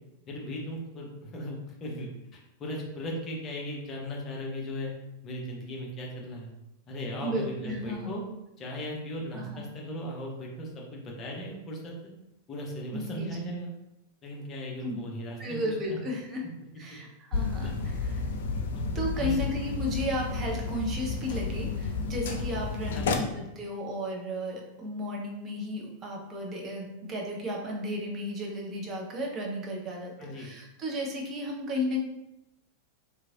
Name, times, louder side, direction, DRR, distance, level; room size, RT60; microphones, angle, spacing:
voice 1, 0.3-4.9 5.2-6.5 6.9-8.2 8.6-12.1 12.5-13.7 14.2-16.0 17.6-17.7 18.7-18.8 19.2-19.4 22.9-23.3 30.2-30.5, equal, 30° left, -2 dB, 0.8 m, -37 dB
voice 2, 7.2-8.2 9.3-9.6 12.9-13.5 14.8-15.0 15.4-16.4 16.8-18.2 18.9-32.0, left 1 dB, 25° right, -1 dB, 0.7 m, -34 dB
sound 1, 17.3-23.1, left 4 dB, 60° left, 0.3 m, -31 dB
3.1 x 2.5 x 2.4 m, 0.90 s
figure-of-eight pair, 90°, 0 cm